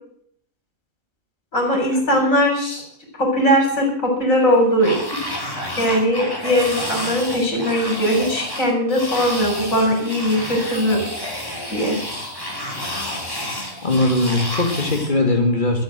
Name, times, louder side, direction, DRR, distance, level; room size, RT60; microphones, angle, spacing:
voice 1, 1.5-2.8 3.1-4.9 5.8-11.0 11.7-12.0, equal, 75° left, 2 dB, 4.7 m, -19 dB
sound 1, 4.8-15.1, left 1 dB, 15° left, 2.6 m, -30 dB
voice 2, 13.8-15.8, left 2 dB, 35° left, 3 dB, 2.6 m, -19 dB
13.5 x 8.0 x 7.6 m, 0.65 s
omnidirectional pair, 1.4 m